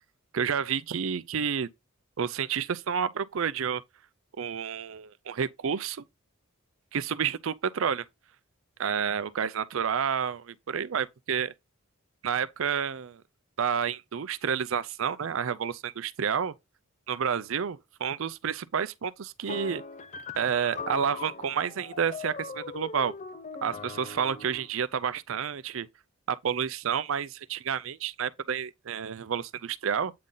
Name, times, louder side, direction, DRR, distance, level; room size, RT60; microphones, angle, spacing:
voice 1, 0.3-1.7 2.2-3.8 4.4-6.0 6.9-8.1 8.8-11.5 12.2-13.2 13.6-16.5 17.1-19.8 20.4-23.1 23.6-25.9 26.3-30.1, right 7 dB, 70° right, 0.5 m, -30 dB
sound 1, 19.5-24.7, left 4 dB, 35° left, 0.6 m, -40 dB
8.6 x 3.8 x 3.8 m
head